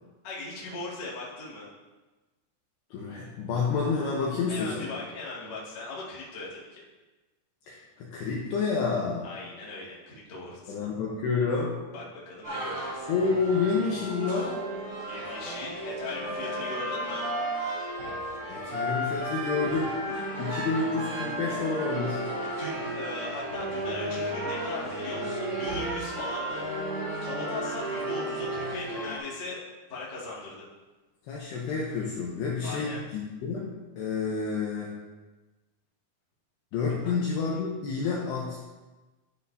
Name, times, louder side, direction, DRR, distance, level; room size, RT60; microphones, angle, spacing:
voice 1, 0.2-1.6 4.5-6.8 9.2-10.9 11.9-13.1 15.0-17.2 20.3-20.4 22.6-26.6 27.2-29.6 29.9-30.7 32.6-33.0 37.0-37.2, left 2 dB, 55° left, -7 dB, 1.2 m, -39 dB
voice 2, 2.9-4.8 7.7-9.3 10.7-11.8 13.1-14.5 18.5-19.9 20.4-22.2 31.3-34.9 36.7-38.6, left 4 dB, 80° left, -3 dB, 2.4 m, -29 dB
sound 1, 12.4-29.2, right 1 dB, 35° right, 1.2 m, -33 dB
11.5 x 8.0 x 2.7 m, 1.2 s
omnidirectional pair, 6.0 m